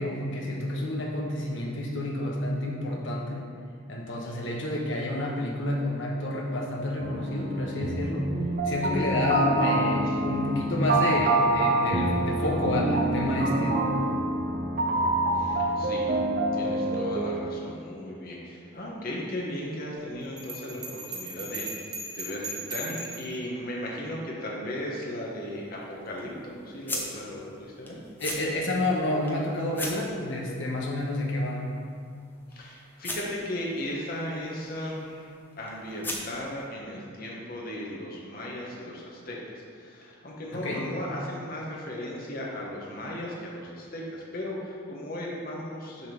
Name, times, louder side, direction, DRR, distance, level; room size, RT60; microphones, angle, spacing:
voice 1, 0.0-3.4 3.9-8.3 8.6-13.8 28.2-31.7 40.5-40.8, left 1 dB, 60° left, -1 dB, 1.0 m, -29 dB
sound 1, 7.0-17.4, right 2 dB, 45° right, 0.6 m, -27 dB
voice 2, 15.3-16.1 16.5-28.0 32.5-35.3 35.6-46.1, left 1 dB, 45° left, -3 dB, 1.1 m, -36 dB
Bell, 20.4-23.3, right 2 dB, 20° right, 0.9 m, -37 dB
sound 2, 25.0-36.7, left 1 dB, 10° left, 0.6 m, -42 dB
6.6 x 3.6 x 5.9 m, 2.3 s
head